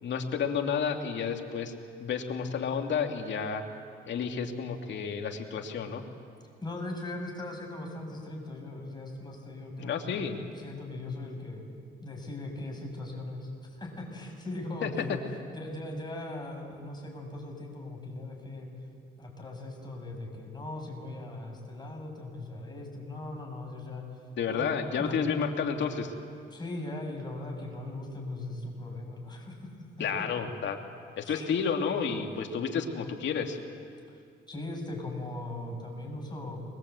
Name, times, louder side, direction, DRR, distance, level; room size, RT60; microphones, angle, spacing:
voice 1, 0.0-1.7 2.0-3.6 4.1-6.0 9.8-10.3 14.8-15.2 24.4-26.1 30.0-30.8 31.2-33.6, left 6 dB, 65° left, 4 dB, 2.3 m, -31 dB
voice 2, 6.6-10.2 10.6-11.6 12.0-15.2 15.5-18.7 19.2-24.2 24.5-25.2 26.5-29.7 31.2-31.5 34.5-36.6, left 2 dB, 20° left, 1 dB, 6.6 m, -39 dB
24.5 x 22.5 x 8.2 m, 2.3 s
cardioid pair, 90°, 20 cm